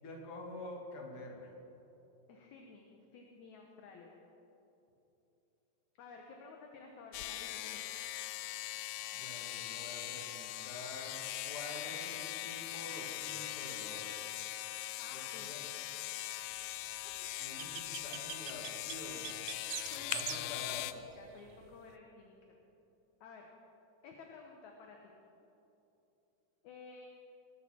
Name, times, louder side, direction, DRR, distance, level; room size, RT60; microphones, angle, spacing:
voice 1, 0.0-1.5 9.1-14.1 15.1-15.7 17.4-19.3 20.1-20.9, left 2 dB, 45° left, 0 dB, 2.6 m, -48 dB
voice 2, 2.3-4.2 6.0-8.0 15.0-15.5 19.9-22.6 23.2-23.5 24.0-25.1 26.6-27.1, left 4 dB, 70° left, 1 dB, 2.2 m, -53 dB
sound 1, 7.1-20.9, left 15 dB, 85° left, 2.2 m, -41 dB
sound 2, 17.1-21.9, right 15 dB, 80° right, 1.8 m, -43 dB
19.0 x 13.0 x 4.4 m, 3.0 s
omnidirectional pair, 3.9 m